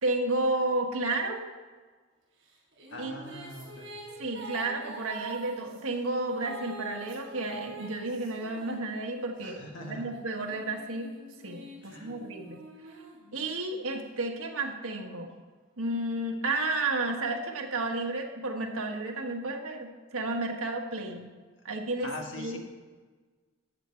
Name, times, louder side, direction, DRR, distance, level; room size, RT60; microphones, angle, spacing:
voice 1, 0.0-1.4 3.0-3.1 4.2-11.1 11.4-12.6 13.3-15.3 15.8-21.3 21.6-22.1 22.4-22.6, right 2 dB, 85° right, 3 dB, 1.5 m, -32 dB
sound 1, 2.5-9.4 10.1-13.8, right 3 dB, 60° right, 3.9 m, -45 dB
voice 2, 2.9-4.0 9.4-10.1 11.8-12.1 22.0-22.6, left 2 dB, 60° left, 2 dB, 1.6 m, -42 dB
13.5 x 8.2 x 4.5 m, 1.4 s
head